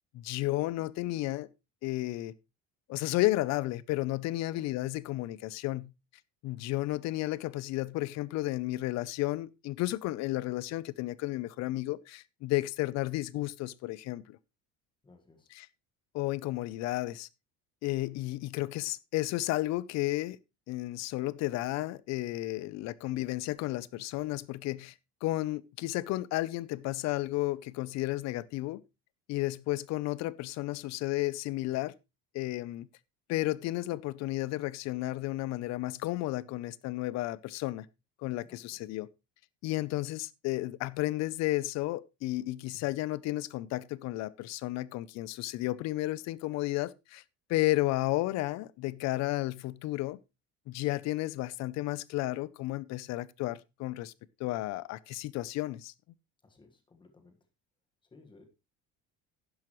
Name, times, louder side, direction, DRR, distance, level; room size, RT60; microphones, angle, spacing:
voice 1, 0.1-1.5 1.8-2.3 2.9-5.9 6.4-14.4 15.5-15.7 16.1-17.3 17.8-20.4 20.7-24.9 25.2-28.8 29.3-31.9 32.3-32.9 33.3-37.9 38.2-39.1 39.6-47.2 47.5-50.2 50.7-54.1 54.4-55.9, left 17 dB, 50° left, 0.6 m, -32 dB
voice 2, 15.0-15.5 38.4-38.8 56.4-57.4 58.1-58.4, left 3 dB, 15° left, 1.5 m, -58 dB
11.0 x 10.5 x 3.1 m
cardioid pair, 180°, 34 cm